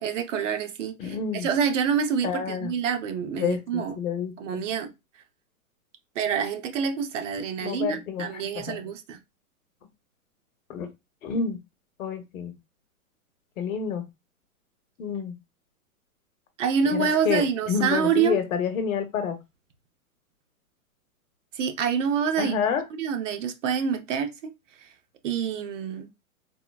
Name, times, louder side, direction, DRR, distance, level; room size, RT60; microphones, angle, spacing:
voice 1, 0.0-4.0 4.4-4.9 6.2-9.2 16.6-18.4 21.6-22.5 22.9-24.5 25.2-26.1, right 6 dB, 55° right, 0.7 m, -27 dB
voice 2, 1.0-1.5 2.2-2.7 3.4-4.6 7.6-8.8 10.7-10.9 11.2-11.6 12.0-12.5 13.6-14.0 15.0-15.3 16.8-19.4 22.4-22.8, left 7 dB, 65° left, 0.9 m, -29 dB
3.8 x 2.0 x 2.2 m
hypercardioid pair, 130°, 44 cm